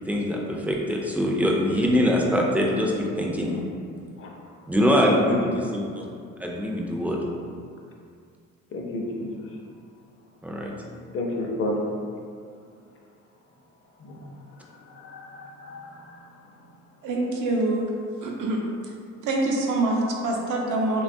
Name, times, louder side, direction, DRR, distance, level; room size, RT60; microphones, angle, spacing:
voice 1, 0.1-3.6 4.7-5.5 5.7-6.0 6.4-7.2 10.4-10.7, equal, 5° right, -2 dB, 0.3 m, -23 dB
voice 2, 4.2-4.5 5.1-5.6 8.7-9.6 11.1-11.9 14.0-16.4, left 2 dB, 45° left, -1 dB, 0.5 m, -32 dB
voice 3, 17.0-17.9 18.2-18.9 19.2-21.0, right 2 dB, 80° right, -1 dB, 0.6 m, -25 dB
2.9 x 2.3 x 2.6 m, 2.3 s
cardioid pair, 90°, 30 cm